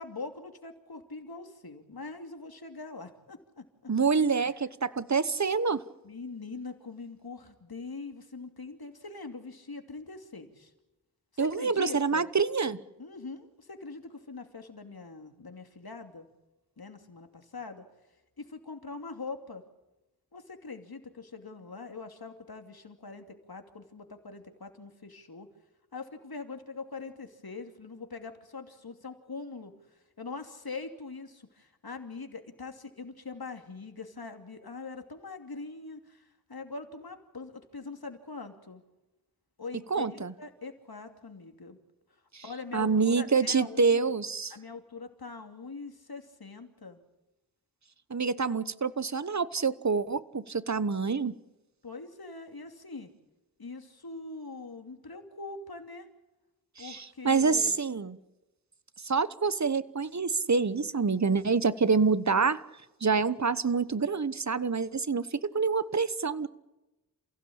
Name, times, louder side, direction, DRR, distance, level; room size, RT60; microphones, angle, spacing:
voice 1, 0.0-3.9 6.0-10.7 11.3-12.3 13.0-16.3 16.8-17.8 18.4-19.6 20.3-25.5 25.9-38.8 39.6-41.8 42.4-44.1 44.5-47.0 51.8-53.1 53.6-56.1 56.8-57.8, left 4 dB, 75° left, 6 dB, 2.9 m, -43 dB
voice 2, 3.9-5.8 11.4-12.8 39.9-40.3 42.3-42.4 42.7-44.5 48.1-51.3 56.8-58.2 59.0-62.6 63.0-66.5, right 5 dB, 50° right, 15 dB, 1.1 m, -27 dB
28.5 x 16.0 x 8.8 m, 1.0 s
wide cardioid pair, 50°, 37 cm